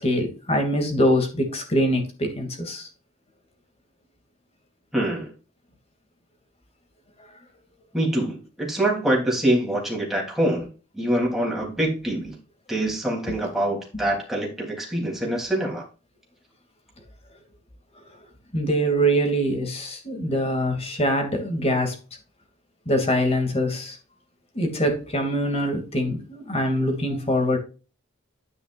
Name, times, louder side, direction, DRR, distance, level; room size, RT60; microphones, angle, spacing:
voice 1, 0.0-2.9 18.5-22.0 22.9-24.0 24.5-27.6, equal, 30° left, 4 dB, 2.6 m, -23 dB
voice 2, 4.9-5.3 7.9-10.7 10.9-12.3 12.7-15.8, right 1 dB, ahead, -2 dB, 3.3 m, -25 dB
9.9 x 9.8 x 2.6 m, 0.34 s
head